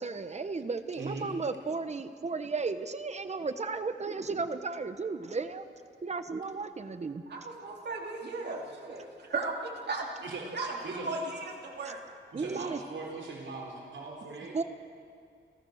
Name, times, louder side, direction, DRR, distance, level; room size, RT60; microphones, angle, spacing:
voice 1, 0.0-5.6 6.0-7.2 12.3-12.8 14.5-14.6, right 4 dB, 35° right, 10 dB, 1.1 m, -34 dB
voice 2, 0.9-1.3 10.2-10.4 10.8-11.1 12.3-14.6, right 3 dB, 75° right, -2 dB, 3.9 m, -40 dB
voice 3, 7.3-10.1 10.5-12.0, right 3 dB, 60° right, -1 dB, 3.5 m, -36 dB
28.5 x 15.0 x 6.6 m, 2.2 s
wide cardioid pair, 145°, 20 cm